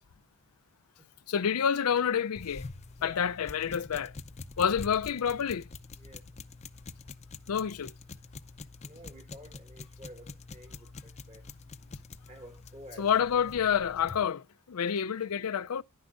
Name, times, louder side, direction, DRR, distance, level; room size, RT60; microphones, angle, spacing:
voice 1, 1.3-2.7 3.0-4.1 4.6-5.7 7.5-7.9 13.0-15.8, left 7 dB, 85° left, 0.5 m, -28 dB
sound 1, 2.3-14.3, left 3 dB, 30° left, 0.6 m, -46 dB
voice 2, 8.8-11.5 12.3-13.5, equal, 30° right, 1.7 m, -51 dB
11.0 x 9.6 x 2.5 m
head